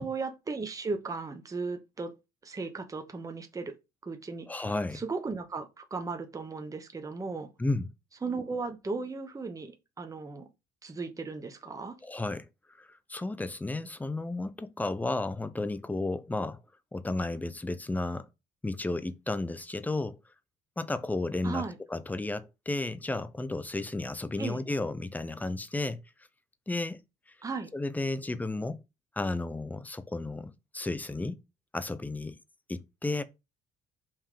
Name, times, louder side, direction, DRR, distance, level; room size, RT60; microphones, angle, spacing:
voice 1, 0.0-2.1 2.4-3.8 4.0-4.6 4.9-7.5 8.2-10.5 10.8-12.0 21.4-21.8 24.4-24.6 27.4-27.7, right 4 dB, 20° right, 1.1 m, -36 dB
voice 2, 4.5-5.0 7.6-7.9 12.0-12.5 12.8-16.6 16.9-18.3 18.6-20.2 20.8-26.0 26.7-27.0 27.7-28.8 29.2-31.4 31.7-32.4 32.7-33.2, left 2 dB, 10° left, 0.7 m, -33 dB
5.7 x 3.5 x 5.0 m
cardioid pair, 110°, 17 cm